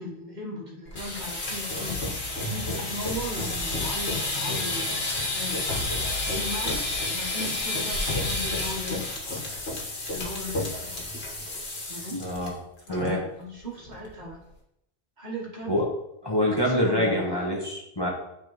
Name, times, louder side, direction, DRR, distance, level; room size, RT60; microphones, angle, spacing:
voice 1, 0.0-2.0 2.5-5.7 6.2-9.2 10.1-11.0 11.9-12.4 12.9-14.4 15.2-15.8 16.6-17.5, left 1 dB, 45° right, -2 dB, 1.3 m, -37 dB
sound 1, 0.9-12.5 12.8-13.1 13.4-13.5 13.9-14.3, left 2 dB, 75° left, 1.5 m, -30 dB
voice 2, 12.2-12.5 12.9-13.2 15.7-15.9 16.2-18.1, left 1 dB, 25° left, -3 dB, 1.2 m, -25 dB
10.5 x 3.5 x 3.0 m, 0.82 s
omnidirectional pair, 1.1 m